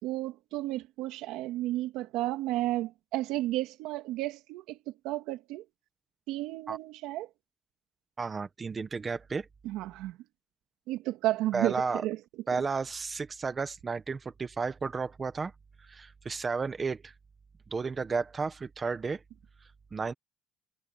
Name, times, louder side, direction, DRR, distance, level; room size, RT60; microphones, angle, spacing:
voice 1, 0.0-5.6 6.3-7.3 9.6-10.2 10.9-12.2, right 16 dB, 75° right, 2.7 m, -32 dB
voice 2, 8.2-9.5 11.5-12.0 12.5-15.5 15.9-17.1 17.7-19.2 19.9-20.1, right 4 dB, 20° right, 1.1 m, -33 dB
cardioid pair, 155°, 0 cm